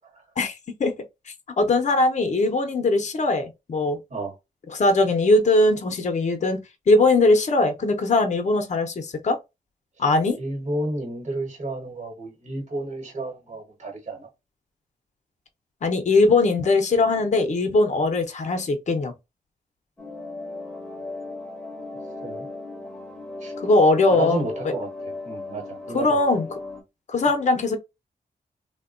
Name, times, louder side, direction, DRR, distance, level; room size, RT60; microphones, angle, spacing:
voice 1, 1.6-4.0 4.7-6.6 6.9-9.4 10.0-10.4 15.8-19.1 23.6-24.7 25.9-26.5 27.1-27.8, left 2 dB, 50° left, 0.6 m, -20 dB
voice 2, 10.3-14.3 22.2-22.5 23.4-23.5 24.1-26.2, right 2 dB, 45° right, 1.1 m, -31 dB
sound 1, 20.0-26.8, left 2 dB, 5° left, 0.7 m, -36 dB
3.3 x 2.1 x 2.4 m
wide cardioid pair, 140°, 16 cm